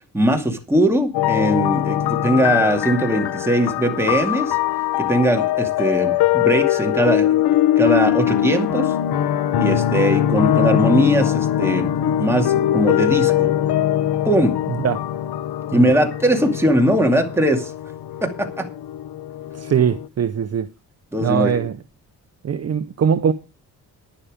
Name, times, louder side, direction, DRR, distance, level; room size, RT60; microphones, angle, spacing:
voice 1, 0.1-4.6 5.0-8.9 9.6-11.9 12.2-13.5 14.3-14.6 15.7-17.7 18.2-18.7 21.1-21.7, right 1 dB, 5° right, 2.4 m, -20 dB
sound 1, 1.1-20.1, left 11 dB, 85° left, 1.0 m, -21 dB
voice 2, 19.6-20.7 21.2-21.7 22.4-23.3, right 8 dB, 40° right, 0.7 m, -21 dB
11.5 x 10.5 x 5.1 m
wide cardioid pair, 135°, 38 cm